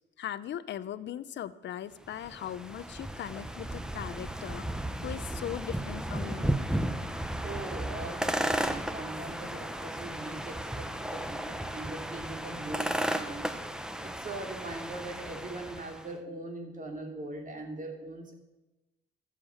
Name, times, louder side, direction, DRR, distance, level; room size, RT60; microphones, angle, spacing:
voice 1, 0.2-6.5, left 10 dB, 65° left, 16 dB, 0.8 m, -39 dB
sound 1, 2.1-16.1, right 1 dB, 5° right, 1.0 m, -34 dB
voice 2, 7.4-13.5 14.0-18.3, right 2 dB, 40° right, 3 dB, 3.0 m, -41 dB
13.5 x 7.6 x 8.6 m, 1.0 s
cardioid pair, 90°, 20 cm